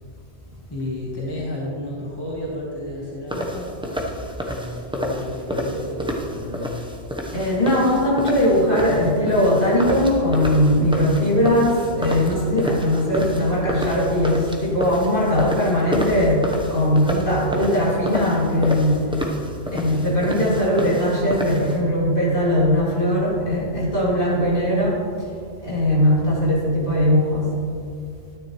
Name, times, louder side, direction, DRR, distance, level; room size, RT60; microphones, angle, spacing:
voice 1, 0.7-4.0 4.5-6.8, left 1 dB, 20° left, -5 dB, 1.5 m, -31 dB
sound 1, 3.3-21.8, equal, 5° right, 0.8 m, -29 dB
voice 2, 7.3-16.4 16.7-19.0 19.7-25.0 25.6-27.5, left 1 dB, 45° left, -6 dB, 2.8 m, -20 dB
12.5 x 10.0 x 3.1 m, 2.4 s
omnidirectional pair, 1.2 m